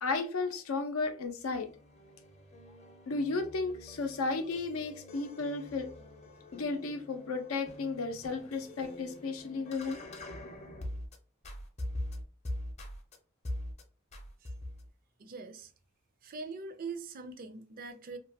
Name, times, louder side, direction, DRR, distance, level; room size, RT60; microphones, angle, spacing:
voice 1, 0.0-1.7 3.1-5.9 6.5-10.0, left 3 dB, 85° left, 0.5 m, -34 dB
sound 1, 1.4-11.2 11.4-13.2 13.5-13.8 14.1-14.9, left 1 dB, 35° left, 0.6 m, -43 dB
voice 2, 15.2-15.7 16.2-18.2, right 4 dB, 45° right, 0.4 m, -42 dB
2.9 x 2.2 x 2.7 m
head